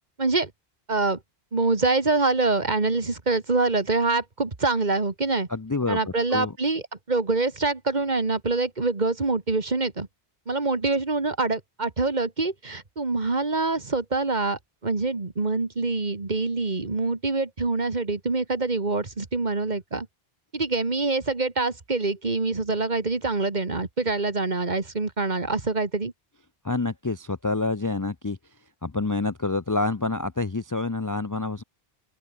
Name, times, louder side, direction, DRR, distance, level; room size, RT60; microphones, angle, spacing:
voice 1, 0.2-0.5 0.9-1.2 1.5-5.5 5.9-10.1 10.5-20.1 20.5-26.1, right 3 dB, 45° right, 2.0 m, -25 dB
voice 2, 5.5-6.5 26.6-28.4 28.8-31.6, left 3 dB, 25° left, 0.5 m, -27 dB
open air
omnidirectional pair, 1.0 m